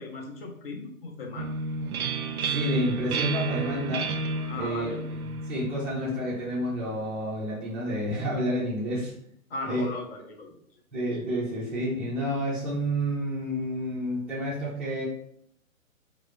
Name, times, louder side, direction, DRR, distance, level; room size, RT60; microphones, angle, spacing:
voice 1, 0.0-1.5 4.5-5.0 9.5-10.8, left 2 dB, 45° left, 1 dB, 1.0 m, -37 dB
sound 1, 1.4-7.0, right 4 dB, 90° right, 0.5 m, -32 dB
voice 2, 2.5-4.2 4.5-4.9 5.5-9.1 9.7-9.9 10.9-15.0, equal, ahead, -10 dB, 0.5 m, -29 dB
4.4 x 2.6 x 3.2 m, 0.67 s
hypercardioid pair, 135°, 42 cm